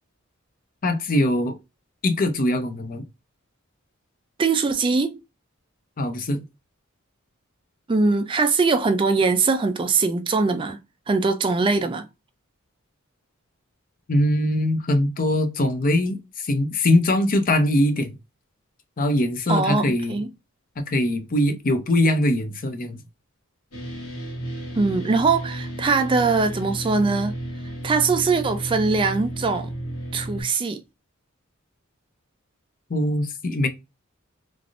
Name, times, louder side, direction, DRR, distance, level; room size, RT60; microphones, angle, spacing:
voice 1, 0.8-1.6 2.0-3.0 6.0-6.4 14.1-18.1 19.0-20.2 20.8-23.0 32.9-33.7, left 1 dB, 40° left, 0.5 m, -22 dB
voice 2, 4.4-5.2 7.9-10.8 11.1-12.0 19.5-20.3 24.8-27.3 27.8-29.7 30.1-30.8, right 4 dB, 25° right, 0.3 m, -21 dB
sound 1, 23.7-30.4, right 1 dB, 85° left, 1.6 m, -33 dB
3.3 x 2.4 x 2.4 m
head